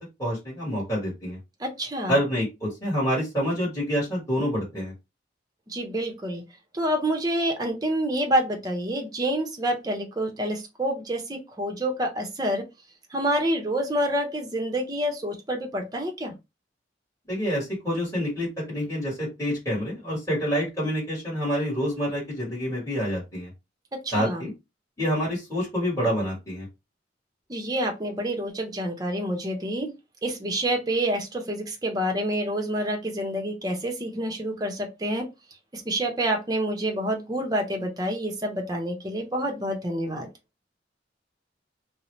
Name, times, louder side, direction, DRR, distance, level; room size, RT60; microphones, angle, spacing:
voice 1, 0.2-1.4 2.1-4.9 17.3-23.5 24.1-24.5 25.0-26.7, equal, 15° left, -5 dB, 1.4 m, -27 dB
voice 2, 1.6-2.2 5.7-6.4 6.7-12.6 13.1-16.3 24.0-24.5 27.5-29.9 30.2-35.3 35.7-40.3, right 1 dB, 20° right, 2 dB, 0.6 m, -28 dB
2.6 x 2.0 x 3.1 m, 0.23 s
head